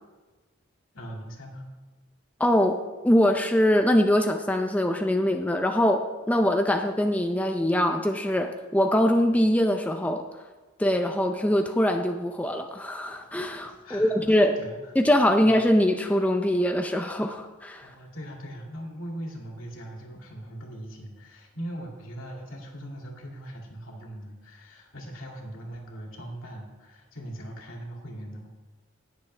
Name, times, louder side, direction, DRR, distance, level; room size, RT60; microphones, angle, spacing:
voice 1, 0.9-1.7 13.8-14.9 15.4-15.6 17.8-28.5, right 1 dB, 85° left, -1 dB, 2.4 m, -40 dB
voice 2, 2.4-10.3 10.8-14.6 14.9-17.9, left 1 dB, 5° left, 4 dB, 0.4 m, -23 dB
19.0 x 7.0 x 3.3 m, 1.3 s
head